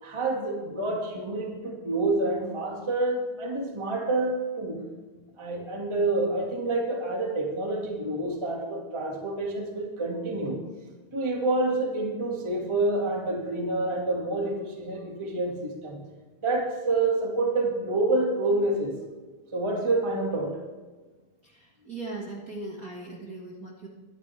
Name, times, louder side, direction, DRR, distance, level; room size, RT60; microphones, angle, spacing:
voice 1, 0.0-4.8 5.4-10.6 11.1-16.0 16.4-19.0 19.5-20.6, right 2 dB, 15° right, 0 dB, 1.2 m, -28 dB
voice 2, 21.4-23.9, right 2 dB, 35° right, -3 dB, 1.6 m, -39 dB
22.5 x 10.5 x 3.4 m, 1.3 s
omnidirectional pair, 3.5 m